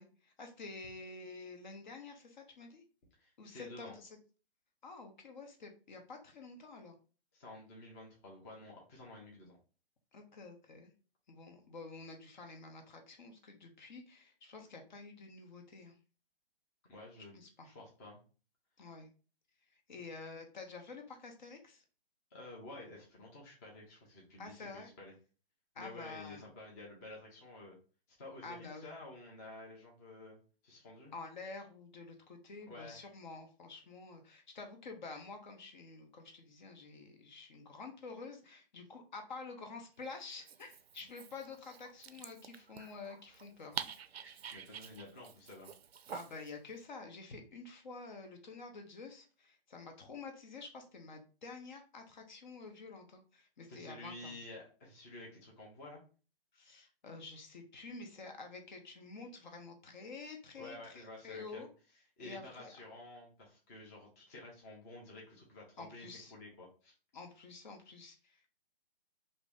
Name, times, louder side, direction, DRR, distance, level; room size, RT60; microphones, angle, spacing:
voice 1, 0.0-2.8 3.4-4.2 4.8-7.0 10.1-10.9 11.3-16.0 17.3-17.7 18.8-19.1 19.7-21.8 24.4-24.9 25.7-26.4 28.4-28.9 31.1-43.9 46.1-54.4 56.5-61.7 62.2-62.7 65.8-66.3 67.1-68.5, left 3 dB, 50° left, 4 dB, 0.8 m, -49 dB
voice 2, 3.2-3.9 7.3-9.6 16.9-18.2 22.3-25.1 25.8-27.8 28.1-30.4 30.6-31.1 32.7-33.0 44.5-45.7 53.7-56.0 60.5-61.6 62.2-66.9, left 2 dB, 15° left, -3 dB, 0.6 m, -51 dB
Dog, 40.3-46.5, right 8 dB, 80° right, 0.5 m, -48 dB
2.8 x 2.6 x 3.4 m, 0.37 s
hypercardioid pair, 150°, 31 cm